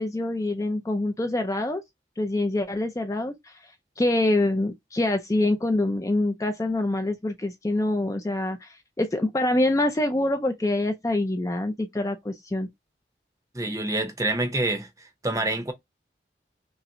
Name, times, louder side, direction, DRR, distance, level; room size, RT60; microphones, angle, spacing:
voice 1, 0.0-1.8 2.2-3.7 4.0-12.7, left 2 dB, 20° left, 0.4 m, -25 dB
voice 2, 13.5-14.9 15.2-15.7, right 2 dB, 20° right, 0.7 m, -26 dB
5.5 x 2.1 x 2.5 m
head